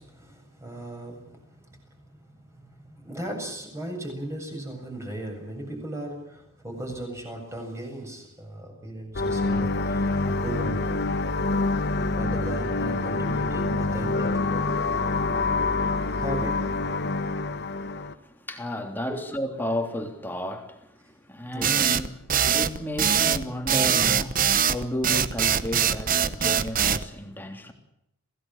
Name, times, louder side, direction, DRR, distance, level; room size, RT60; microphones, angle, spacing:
voice 1, 0.0-1.8 2.1-10.8 12.1-14.7 15.0-15.1 16.1-16.6 19.1-19.2 21.5-21.8, right 1 dB, 15° right, 7.5 m, -37 dB
sound 1, 9.1-18.1, left 3 dB, 50° left, 1.3 m, -26 dB
voice 2, 17.5-27.7, left 1 dB, 10° left, 3.4 m, -33 dB
sound 2, 21.6-27.0, right 8 dB, 40° right, 1.0 m, -22 dB
27.0 x 17.5 x 7.6 m
head